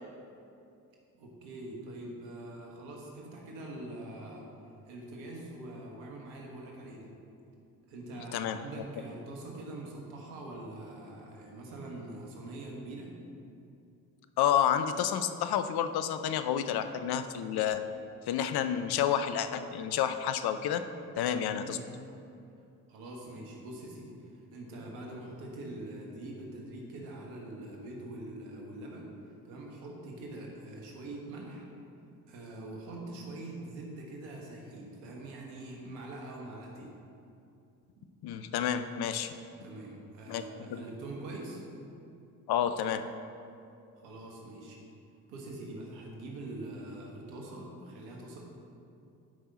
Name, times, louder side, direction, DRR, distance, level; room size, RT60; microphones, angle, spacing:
voice 1, 1.1-4.5 4.8-7.1 7.9-13.1 21.4-21.9 22.9-24.1 24.5-29.1 29.4-31.6 32.3-36.9 39.6-41.6 44.0-44.8 45.3-48.4, right 2 dB, 75° right, -1 dB, 1.6 m, -44 dB
voice 2, 14.4-17.8 18.3-20.8 21.2-21.8 38.2-39.3 40.3-40.4 40.7-40.8 42.5-43.0, left 9 dB, 55° left, 9 dB, 0.6 m, -29 dB
11.0 x 5.4 x 4.2 m, 2.6 s
hypercardioid pair, 45°, 46 cm